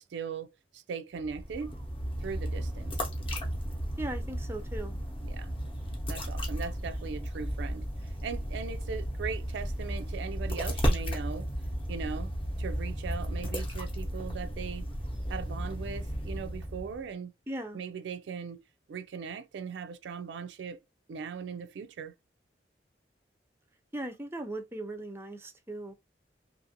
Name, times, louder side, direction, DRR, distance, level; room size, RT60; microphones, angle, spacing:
voice 1, 0.0-1.7 2.2-3.0 5.2-5.5 6.1-11.5 11.9-12.3 12.6-14.9 15.3-17.3 17.7-18.6 18.9-20.8 21.1-22.1, right 5 dB, 80° right, 0.3 m, -39 dB
sound 1, 1.2-17.1, equal, 30° left, 0.7 m, -34 dB
voice 2, 4.0-5.0 17.5-17.8 23.9-25.9, right 1 dB, 15° right, 0.4 m, -38 dB
2.8 x 2.5 x 2.7 m
head